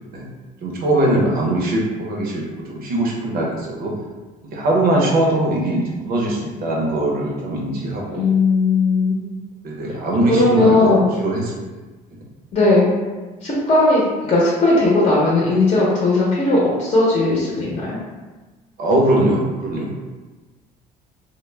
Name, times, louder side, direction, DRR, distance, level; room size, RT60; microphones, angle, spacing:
voice 1, 0.6-3.9 4.4-8.3 9.6-11.6 18.8-20.0, right 1 dB, 60° right, -2 dB, 0.7 m, -21 dB
voice 2, 8.0-9.2 10.3-11.1 12.5-12.9 13.4-18.0, left 2 dB, 35° left, -6 dB, 0.7 m, -17 dB
2.2 x 2.0 x 3.2 m, 1.2 s
cardioid pair, 110°, 17 cm